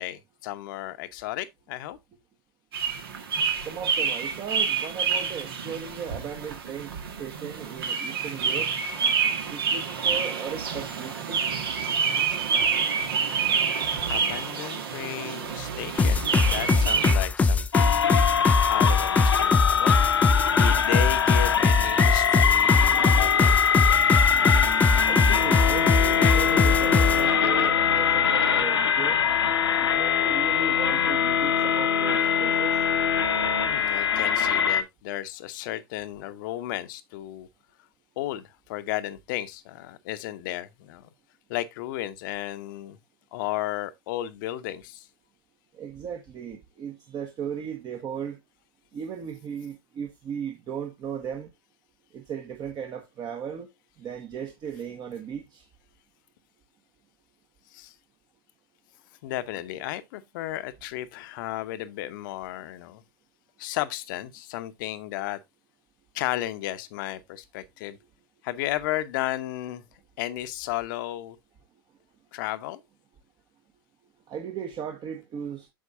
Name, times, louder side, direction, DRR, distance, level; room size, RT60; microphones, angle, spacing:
voice 1, 0.0-2.0 13.7-13.8 14.1-18.1 18.7-20.0 20.5-23.6 33.7-37.5 38.2-41.1 41.5-43.0 43.3-45.1 57.7-57.9 59.2-63.0 63.6-65.4 66.1-68.0 68.4-69.8 70.2-71.4 72.3-72.8, left 14 dB, 55° left, 0.9 m, -34 dB
sound 1, 2.7-17.1, right 6 dB, 65° right, 1.7 m, -28 dB
voice 2, 3.6-6.9 7.2-8.7 9.5-11.5 25.1-29.2 29.8-32.8 45.7-48.4 48.9-51.5 52.1-53.7 54.0-55.7 74.3-75.7, right 7 dB, 35° right, 1.2 m, -36 dB
sound 2, 16.0-27.2, left 4 dB, 10° left, 0.4 m, -22 dB
sound 3, 17.7-34.8, left 8 dB, 80° left, 1.0 m, -23 dB
8.7 x 6.2 x 2.5 m
figure-of-eight pair, 95°, 13 cm